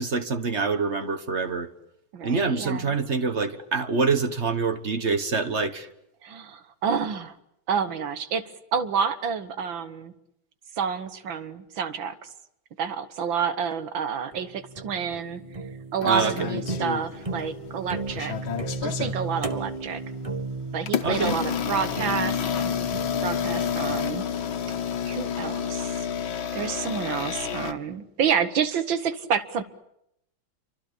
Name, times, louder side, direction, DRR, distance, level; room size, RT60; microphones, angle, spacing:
voice 1, 0.0-1.7 2.2-5.9 16.0-16.5 21.0-21.4, right 4 dB, 35° right, 1.5 m, -26 dB
voice 2, 2.1-3.0 6.2-7.4 7.7-8.4 8.7-10.1 10.8-12.3 12.8-15.4 15.9-18.4 18.8-20.0 20.7-22.8 23.2-24.3 25.1-25.9 26.5-29.6, right 7 dB, 70° right, 1.9 m, -29 dB
sound 1, 14.3-25.5, right 3 dB, 20° right, 1.2 m, -36 dB
sound 2, 16.0-17.5 17.8-19.2 19.8-20.0 20.8-27.7, left 8 dB, 75° left, 2.1 m, -29 dB
28.5 x 25.0 x 8.4 m
omnidirectional pair, 2.3 m